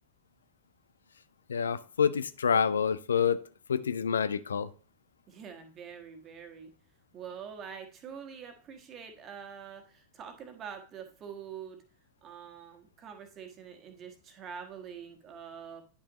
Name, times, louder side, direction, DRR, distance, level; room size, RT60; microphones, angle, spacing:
voice 1, 1.5-3.4 3.7-4.7, left 7 dB, 70° left, 0.3 m, -27 dB
voice 2, 5.3-6.7 7.1-11.8 12.2-15.8, right 7 dB, 30° right, 1.4 m, -45 dB
9.9 x 6.0 x 2.9 m
figure-of-eight pair, 90°, 0 cm